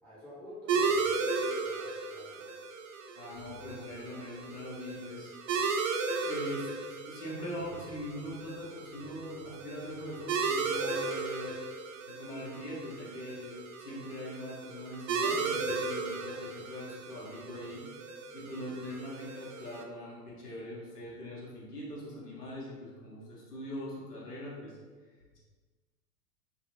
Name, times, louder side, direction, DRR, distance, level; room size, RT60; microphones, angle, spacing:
voice 1, 0.0-2.5, equal, 5° left, -11 dB, 1.4 m, -47 dB
sound 1, 0.7-19.8, right 4 dB, 55° right, 0.5 m, -35 dB
voice 2, 3.1-5.3 5.6-5.7 6.2-11.6 12.1-17.9 18.3-24.8, left 1 dB, 80° left, -5 dB, 1.4 m, -42 dB
3.8 x 2.7 x 2.9 m, 1.5 s
figure-of-eight pair, 95°, 46 cm